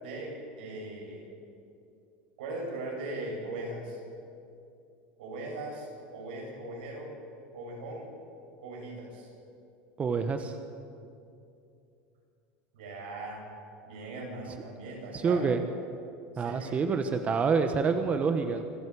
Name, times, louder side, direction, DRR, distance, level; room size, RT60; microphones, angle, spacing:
voice 1, 0.0-1.3 2.4-4.0 5.2-7.1 7.5-8.1 8.6-9.3 12.7-13.4 13.9-15.4 16.3-16.8, right 2 dB, 85° right, -1 dB, 7.4 m, -39 dB
voice 2, 10.0-10.5 15.1-15.6 16.4-18.6, right 5 dB, 25° right, 7 dB, 1.2 m, -27 dB
25.5 x 12.5 x 8.5 m, 2.6 s
supercardioid pair, 115°, 5 cm